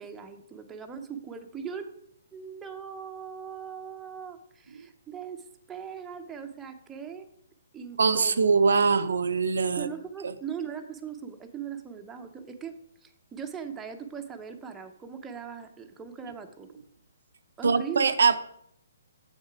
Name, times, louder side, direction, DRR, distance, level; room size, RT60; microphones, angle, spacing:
voice 1, 0.0-2.0 2.3-7.3 7.7-8.5 9.7-12.7 13.0-16.7 17.6-18.1, right 7 dB, 10° right, 4 dB, 0.8 m, -39 dB
voice 2, 8.0-9.9 10.2-10.3 17.6-18.4, right 5 dB, 75° right, 10 dB, 0.6 m, -22 dB
7.4 x 6.4 x 4.8 m, 0.70 s
hypercardioid pair, 140°, 0 cm